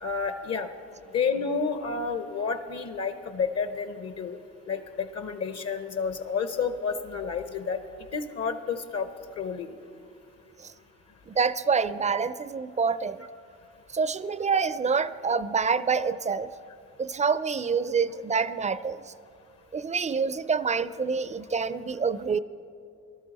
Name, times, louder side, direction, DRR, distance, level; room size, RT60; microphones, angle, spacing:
voice 1, 0.0-0.7 1.1-4.4 4.7-7.8 8.1-9.1 9.4-9.7, left 5 dB, 55° left, 9 dB, 0.8 m, -30 dB
voice 2, 11.3-13.2 13.9-16.5 17.0-19.0 19.7-22.4, right 5 dB, 25° right, 15 dB, 0.4 m, -27 dB
18.5 x 12.5 x 4.1 m, 2.5 s
cardioid pair, 90°, 30 cm